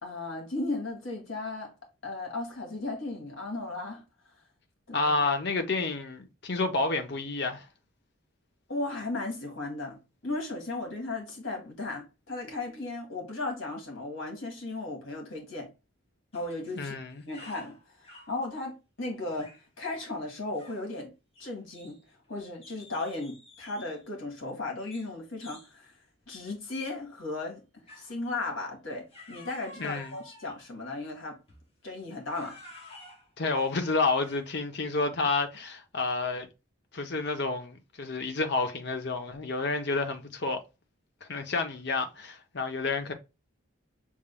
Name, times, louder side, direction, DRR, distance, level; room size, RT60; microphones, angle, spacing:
voice 1, 0.0-1.7 2.0-4.0 4.9-5.1 8.7-15.7 16.3-17.0 17.3-21.1 21.4-22.0 22.3-25.9 26.3-27.6 27.9-31.4 31.8-32.6, left 2 dB, 75° left, 1.7 m, -36 dB
voice 2, 4.9-7.7 16.7-17.2 29.8-30.2 33.4-36.5 36.9-40.6 41.2-43.1, left 3 dB, 55° left, 0.8 m, -30 dB
sound 1, 16.3-16.8 17.1-18.4 19.2-19.6 19.9-20.1 20.5-20.9 21.3-22.2 22.6-24.0 24.9-25.1 25.4-25.7 26.3-26.5 27.9-28.2 29.1-30.7 31.5-31.7 32.2-34.6, left 2 dB, 30° left, 1.3 m, -52 dB
6.2 x 3.7 x 2.2 m
head